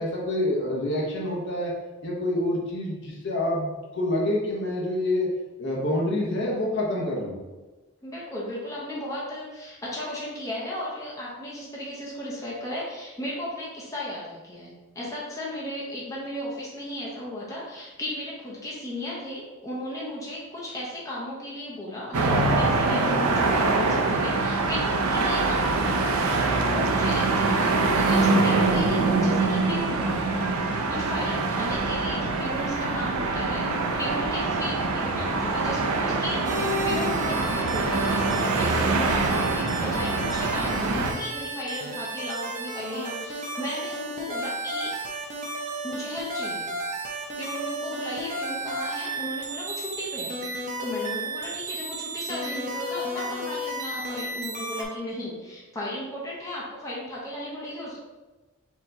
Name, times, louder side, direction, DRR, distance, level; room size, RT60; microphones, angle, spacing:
voice 1, 0.0-1.7 2.0-5.3 5.6-7.4 35.1-35.4, left 1 dB, 55° left, -3 dB, 0.9 m, -27 dB
voice 2, 8.0-33.7 34.0-44.9 45.8-46.7 47.4-58.0, left 1 dB, 15° left, -6 dB, 0.9 m, -35 dB
sound 1, 22.1-41.1, right 3 dB, 90° right, 0.5 m, -24 dB
sound 2, 36.4-54.8, right 1 dB, 35° right, 0.6 m, -33 dB
4.5 x 3.0 x 3.8 m, 1.2 s
head